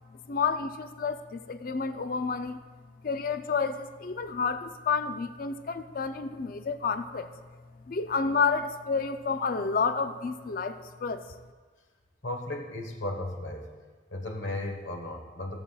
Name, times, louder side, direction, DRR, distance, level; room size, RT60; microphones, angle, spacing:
voice 1, 0.3-2.6 3.0-7.3 7.9-11.2, left 5 dB, 45° left, 10 dB, 0.4 m, -30 dB
voice 2, 12.2-13.7 14.1-15.6, left 1 dB, 65° left, 2 dB, 1.2 m, -35 dB
17.5 x 7.3 x 2.3 m, 1.5 s
head